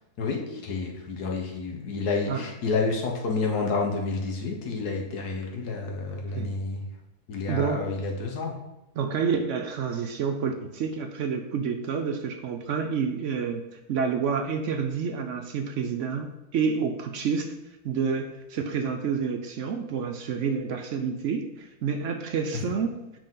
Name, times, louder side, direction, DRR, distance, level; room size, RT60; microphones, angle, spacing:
voice 1, 0.2-6.8 7.3-8.6, left 4 dB, 90° left, 1 dB, 1.6 m, -29 dB
voice 2, 6.1-6.5 7.5-7.9 9.0-13.6 13.9-17.5 17.8-22.9, right 6 dB, 65° right, 5 dB, 0.8 m, -29 dB
7.7 x 4.9 x 3.8 m, 0.92 s
omnidirectional pair, 1.6 m